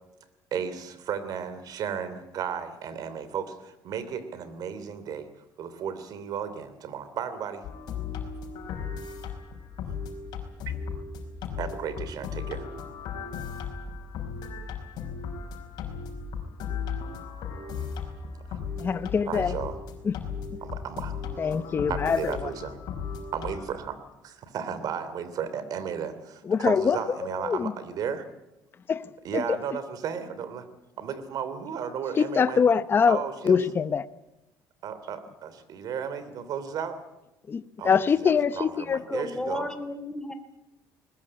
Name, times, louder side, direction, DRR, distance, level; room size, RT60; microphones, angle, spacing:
voice 1, 0.5-5.3 5.6-7.6 11.6-12.7 18.5-18.6 19.2-19.8 20.6-21.2 21.9-22.8 23.3-24.0 24.2-28.2 29.2-30.7 31.0-32.6 33.1-33.6 34.8-37.0 37.8-39.7, right 7 dB, 60° right, 3.0 m, -34 dB
sound 1, 7.6-23.7, left 6 dB, 70° left, 5.1 m, -36 dB
voice 2, 18.8-19.5 20.1-20.2 21.4-22.3 26.5-27.0 27.4-27.7 28.9-29.0 29.3-29.6 32.2-33.2 33.4-34.1 37.5-39.0, left 6 dB, 30° left, 0.8 m, -23 dB
voice 3, 39.1-40.3, left 2 dB, 10° left, 2.8 m, -32 dB
21.0 x 20.5 x 8.8 m
cardioid pair, 130°, 7 cm